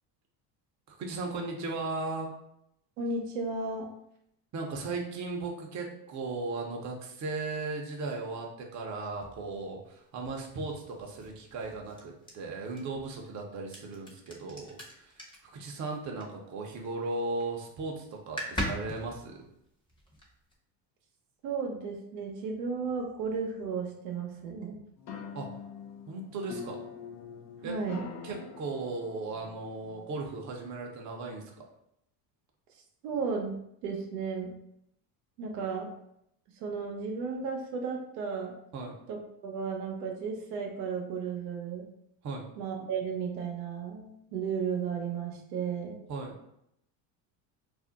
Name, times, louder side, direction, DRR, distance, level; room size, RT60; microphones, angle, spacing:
voice 1, 0.9-2.3 4.5-19.3 25.3-25.5 26.1-26.8 27.6-27.8 28.2-31.4 38.7-38.9 42.2-42.5 46.1-46.3, right 3 dB, 35° right, 1 dB, 0.7 m, -37 dB
voice 2, 3.0-3.9 21.4-24.8 27.6-28.0 33.0-33.5 33.8-34.5 35.4-35.9 36.6-38.5 39.1-41.9 42.6-46.0, right 5 dB, 85° right, 1 dB, 0.8 m, -34 dB
sound 1, 9.2-16.9 17.2-17.6 17.9-18.0 18.2-20.6, equal, 10° left, 0.8 m, -41 dB
sound 2, 25.0-30.2, left 6 dB, 35° left, 0.5 m, -44 dB
2.5 x 2.1 x 3.8 m, 0.77 s
supercardioid pair, 90°, 48 cm